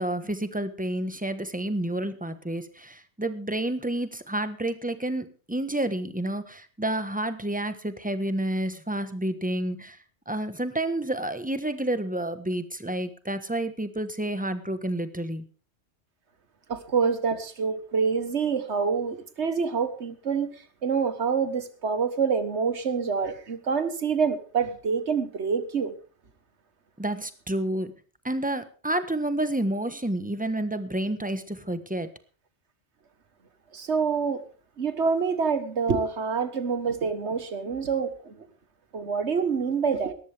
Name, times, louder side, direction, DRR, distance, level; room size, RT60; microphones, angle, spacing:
voice 1, 0.0-10.0 10.3-15.4 27.0-27.9 28.2-32.1, right 1 dB, 10° right, 1.3 m, -29 dB
voice 2, 16.7-20.5 20.8-25.9 33.7-34.4 34.8-38.5 38.9-40.1, right 5 dB, 80° right, 1.7 m, -26 dB
19.0 x 14.0 x 3.5 m
omnidirectional pair, 1.1 m